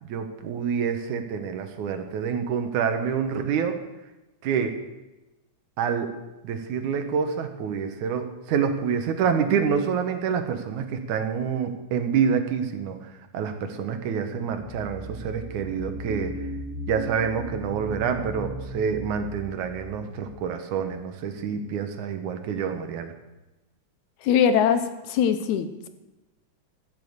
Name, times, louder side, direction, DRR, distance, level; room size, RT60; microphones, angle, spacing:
voice 1, 0.0-3.8 4.4-4.8 5.8-6.1 6.4-13.0 13.3-16.3 16.9-23.1, right 7 dB, 85° right, 7 dB, 2.6 m, -27 dB
sound 1, 14.4-21.0, equal, 55° right, 3.4 m, -37 dB
voice 2, 24.2-25.9, left 8 dB, 85° left, 10 dB, 2.3 m, -22 dB
14.0 x 6.9 x 8.0 m, 1.0 s
omnidirectional pair, 3.4 m